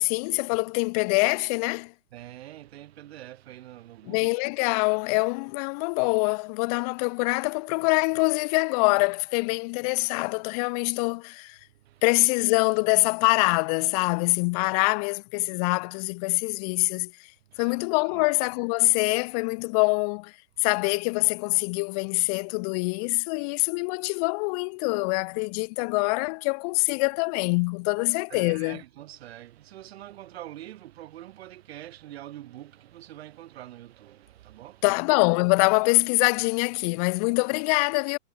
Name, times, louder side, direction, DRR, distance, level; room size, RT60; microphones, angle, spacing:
voice 1, 0.0-1.9 4.1-11.6 12.0-17.1 17.6-20.3 20.6-28.8 34.8-38.2, left 31 dB, 30° left, 1.1 m, -24 dB
voice 2, 2.1-4.3 11.8-12.0 17.5-17.8 18.1-18.3 28.3-34.9, right 13 dB, 55° right, 8.0 m, -44 dB
hypercardioid pair, 145°, 38 cm